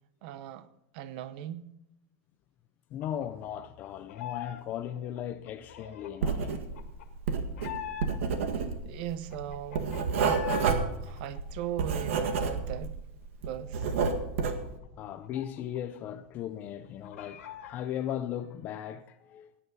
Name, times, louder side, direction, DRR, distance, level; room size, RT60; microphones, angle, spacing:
voice 1, 0.2-0.7 0.9-1.7 8.6-10.0 11.0-13.0 13.4-13.9, right 11 dB, 45° right, 0.8 m, -39 dB
voice 2, 2.9-6.6 15.0-19.6, left 10 dB, 25° left, 0.5 m, -37 dB
sound 1, 3.0-4.6 4.9-8.4 8.8-8.9 9.1-10.7 11.1-12.8 13.1-13.2 13.5-16.0 16.2-16.3 16.7-17.8, left 10 dB, 75° left, 1.9 m, -43 dB
Writing, 6.2-6.9 7.1-13.0 13.3-14.7, right 5 dB, 70° right, 1.9 m, -29 dB
17.0 x 10.0 x 4.0 m
supercardioid pair, 170°, 7 cm